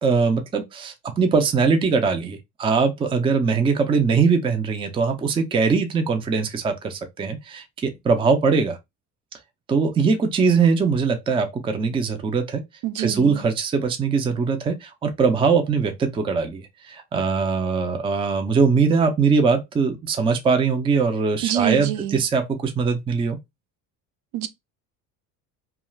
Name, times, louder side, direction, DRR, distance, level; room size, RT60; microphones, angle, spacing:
voice 1, 0.0-8.8 9.7-12.6 13.0-23.4, right 5 dB, 15° right, 0.3 m, -21 dB
voice 2, 12.8-13.4 21.4-22.2 24.3-24.5, right 12 dB, 70° right, 0.5 m, -26 dB
2.4 x 2.3 x 3.0 m
cardioid pair, 125°, 38 cm